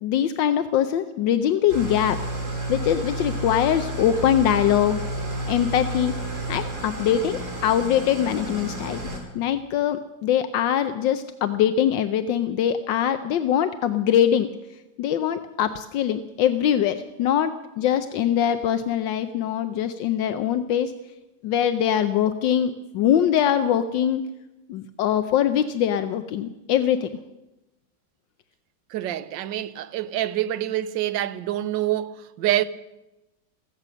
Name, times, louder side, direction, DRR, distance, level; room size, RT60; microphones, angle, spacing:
voice 1, 0.0-2.2 2.7-5.0 5.5-6.1 6.5-9.0 9.3-14.5 15.0-20.9 21.4-24.2 24.7-27.1, left 10 dB, 80° left, 1.4 m, -22 dB
Engine starting / Idling, 1.7-9.2, right 1 dB, 55° right, 4.5 m, -31 dB
voice 2, 28.9-32.6, right 13 dB, 85° right, 1.4 m, -26 dB
15.0 x 15.0 x 6.2 m
omnidirectional pair, 2.0 m